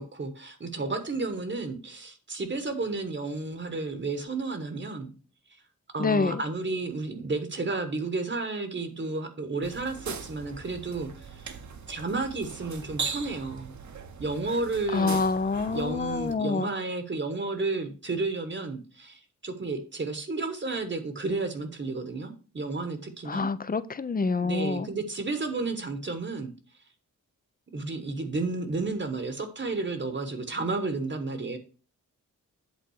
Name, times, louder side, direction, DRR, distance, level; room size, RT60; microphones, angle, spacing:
voice 1, 0.0-5.1 5.9-11.5 11.9-13.7 14.2-15.2 15.7-23.5 24.4-26.5 27.7-31.6, right 3 dB, 35° right, 8 dB, 1.1 m, -32 dB
voice 2, 6.0-6.4 14.9-16.7 23.3-24.9, left 4 dB, 30° left, 15 dB, 0.5 m, -27 dB
sound 1, 9.6-16.3, right 5 dB, 60° right, 1.0 m, -39 dB
8.4 x 3.7 x 6.2 m, 0.37 s
wide cardioid pair, 120°, 32 cm